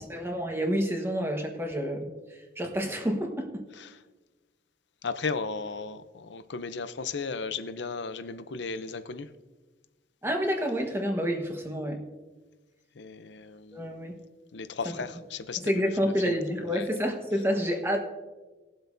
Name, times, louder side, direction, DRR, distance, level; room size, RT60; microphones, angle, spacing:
voice 1, 0.0-2.1 2.6-3.6 10.2-12.0 13.7-14.1 14.8-14.9 15.6-18.0, equal, 15° right, 1.3 m, -29 dB
voice 2, 5.0-9.3 13.0-14.1 14.5-16.4 16.7-16.9, left 4 dB, 70° left, 0.6 m, -35 dB
20.0 x 7.8 x 2.7 m
head